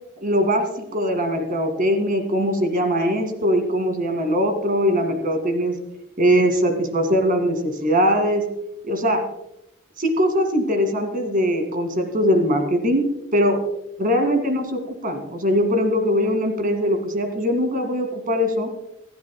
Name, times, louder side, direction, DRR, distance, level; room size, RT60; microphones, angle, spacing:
voice 1, 0.2-5.8 6.2-8.4 8.8-9.2 10.0-13.0 13.3-13.6 14.0-18.7, equal, 40° right, 6 dB, 2.1 m, -21 dB
27.0 x 9.4 x 2.2 m, 0.83 s
head